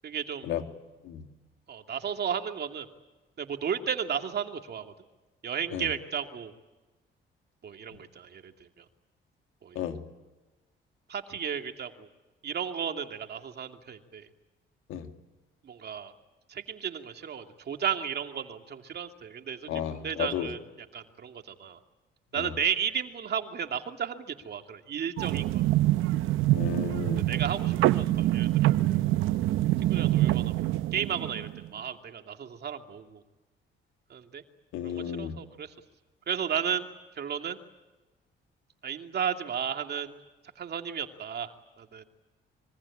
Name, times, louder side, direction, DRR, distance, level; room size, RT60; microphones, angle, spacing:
voice 1, 0.0-0.5 1.7-2.9 3.4-4.9 5.4-6.5 7.6-8.9 9.6-9.8 11.1-12.1 12.4-14.3 15.6-16.1 16.5-20.6 20.9-21.8 22.3-25.6 27.3-28.9 29.8-30.6 30.9-33.2 34.1-34.4 34.8-35.7 36.3-36.9 37.1-37.6 38.8-40.1 40.6-42.0, right 8 dB, 55° right, 5 dB, 2.6 m, -34 dB
voice 2, 19.7-20.5 22.4-22.5 26.5-27.2 34.7-35.3, left 10 dB, 90° left, 6 dB, 2.6 m, -33 dB
sound 1, 25.2-31.7, right 15 dB, 90° right, 0.8 m, -25 dB
26.0 x 23.5 x 8.6 m, 1.2 s
cardioid pair, 90°, 20 cm